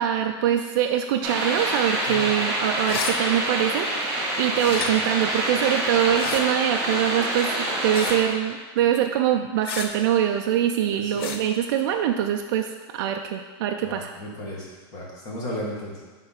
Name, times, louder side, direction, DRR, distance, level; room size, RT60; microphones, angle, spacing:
voice 1, 0.0-12.7 12.9-14.1, right 10 dB, 50° right, 4 dB, 0.4 m, -24 dB
sound 1, 1.2-8.2, right 1 dB, 20° right, 1.6 m, -26 dB
sound 2, 2.8-3.2 4.6-4.9 6.1-6.4 7.9-8.2 9.6-9.9 11.2-11.4, left 6 dB, 55° left, 0.6 m, -31 dB
voice 2, 13.8-16.0, left 1 dB, 25° left, -5 dB, 1.6 m, -35 dB
5.6 x 3.8 x 5.7 m, 1.4 s
supercardioid pair, 170°, 14 cm